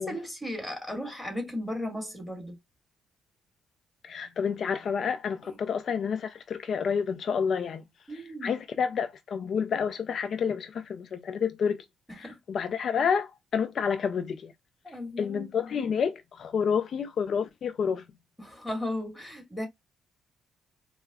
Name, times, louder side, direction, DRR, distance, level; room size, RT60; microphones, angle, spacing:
voice 1, 0.0-2.6 5.4-5.6 8.1-8.5 12.1-12.4 14.8-15.5 18.4-19.7, left 1 dB, 5° left, 1.7 m, -36 dB
voice 2, 4.0-7.8 8.1-11.9 12.2-14.5 15.2-18.0, left 6 dB, 55° left, 0.3 m, -29 dB
4.5 x 2.0 x 2.2 m
cardioid pair, 90°, 0 cm